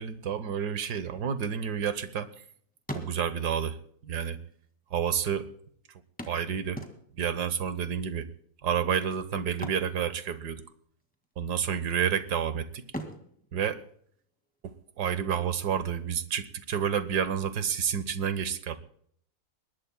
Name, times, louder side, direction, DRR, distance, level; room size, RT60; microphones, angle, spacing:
voice 1, 0.0-2.3 2.9-3.8 4.0-4.4 4.9-5.5 6.3-6.8 7.2-8.3 8.6-10.6 11.4-12.8 13.5-13.8 14.6-18.8, right 8 dB, 85° right, 12 dB, 1.7 m, -29 dB
sound 1, 1.5-2.4 2.7-3.6 4.5-4.6 4.8-4.9 6.2-7.4 9.4-10.7 11.0-11.3 11.8-12.4 12.8-14.6 16.6-16.7 17.1-17.2, equal, 5° left, 1.9 m, -42 dB
21.5 x 20.0 x 2.2 m, 0.63 s
omnidirectional pair, 1.7 m